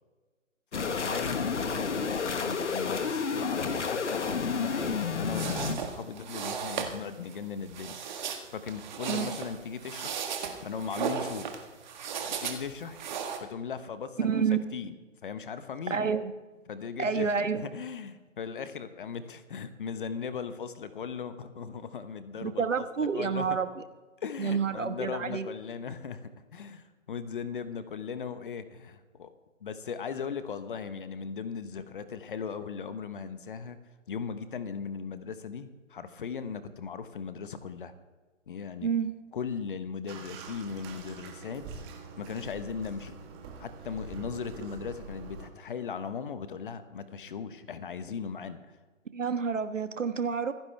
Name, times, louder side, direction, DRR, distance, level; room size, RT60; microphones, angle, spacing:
sound 1, 0.7-5.7, left 5 dB, 65° left, 1.6 m, -30 dB
voice 1, 0.7-2.1 2.4-8.0 8.5-10.2 10.6-11.5 12.3-13.0 13.4-14.4 14.7-14.9 15.2-16.1 16.7-17.3 17.7-23.6 24.2-29.3 29.6-33.8 34.1-37.9 38.5-38.9 39.3-41.6 42.2-43.1 43.6-48.6, left 6 dB, 40° left, 11 dB, 1.2 m, -38 dB
sound 2, 5.0-13.4, right 7 dB, 35° right, 1.7 m, -36 dB
voice 2, 14.2-14.7 15.9-16.3 17.0-17.6 22.4-23.7 24.4-25.5 38.8-39.1 49.1-50.5, right 6 dB, 70° right, 10 dB, 1.4 m, -29 dB
Bathtub (filling or washing), 40.1-45.5, right 4 dB, 20° right, 1.5 m, -45 dB
26.5 x 10.5 x 3.4 m, 1.3 s
figure-of-eight pair, 145°, 39 cm